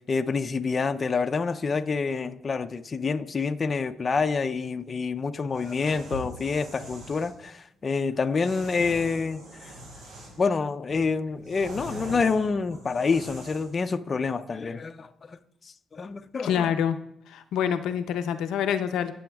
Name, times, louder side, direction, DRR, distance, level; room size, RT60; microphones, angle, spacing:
voice 1, 0.1-9.7 10.4-15.4 15.9-16.7, left 4 dB, 35° left, 0.5 m, -27 dB
sound 1, 5.5-7.3 8.4-10.5 10.9-13.8, right 1 dB, 75° right, 3.8 m, -42 dB
voice 2, 16.4-17.0 17.3-19.1, left 8 dB, 85° left, 0.6 m, -26 dB
18.0 x 7.0 x 2.3 m
cardioid pair, 90°, 0 cm